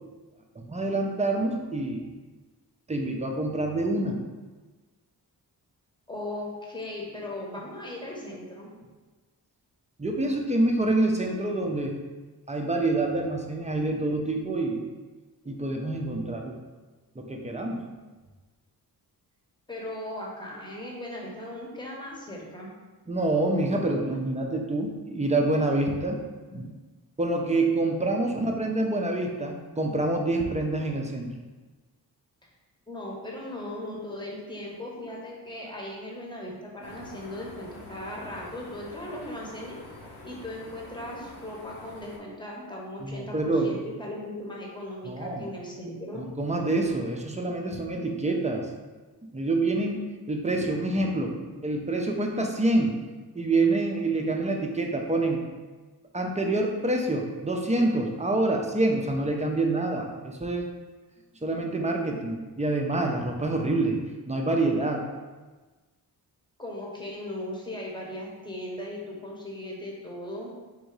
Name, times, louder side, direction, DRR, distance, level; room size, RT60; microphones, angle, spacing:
voice 1, 0.6-2.0 2.9-4.2 10.0-11.9 12.5-14.8 15.5-16.6 17.2-17.8 23.1-26.2 27.2-31.3 43.0-43.7 45.1-45.5 46.1-48.7 49.2-50.0 50.3-51.3 51.6-52.9 53.3-55.4 56.1-60.7 61.4-64.0 64.3-65.1, right 2 dB, 20° right, 1 dB, 0.6 m, -26 dB
voice 2, 6.1-8.7 19.7-22.7 26.5-26.6 32.9-39.8 40.2-46.2 50.5-50.7 51.4-51.6 66.6-70.5, left 1 dB, 10° left, -3 dB, 1.0 m, -38 dB
sound 1, 36.8-42.2, left 2 dB, 75° left, 1.0 m, -46 dB
3.7 x 2.6 x 4.6 m, 1.3 s
cardioid pair, 85°, 40 cm